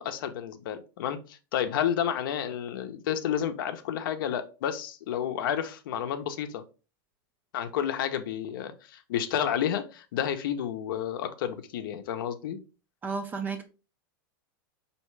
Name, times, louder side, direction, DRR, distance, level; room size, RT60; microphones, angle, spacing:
voice 1, 0.0-6.6 7.5-12.6, left 9 dB, 70° left, 0.6 m, -31 dB
voice 2, 13.0-13.7, right 4 dB, 15° right, 0.5 m, -32 dB
4.2 x 2.8 x 3.1 m
supercardioid pair, 150°, 12 cm